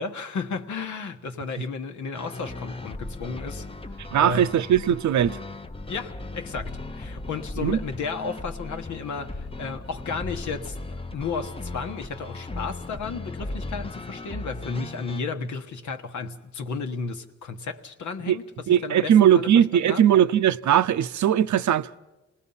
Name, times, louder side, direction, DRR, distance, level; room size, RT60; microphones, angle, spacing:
voice 1, 0.0-4.6 5.9-10.8 11.1-20.0, left 5 dB, 80° left, 1.3 m, -33 dB
sound 1, 2.1-15.2, left 2 dB, 20° left, 0.7 m, -37 dB
voice 2, 4.1-5.4 7.6-7.8 18.3-18.4 18.7-21.9, right 10 dB, 75° right, 0.6 m, -19 dB
27.0 x 19.0 x 5.6 m
cardioid pair, 70°, 29 cm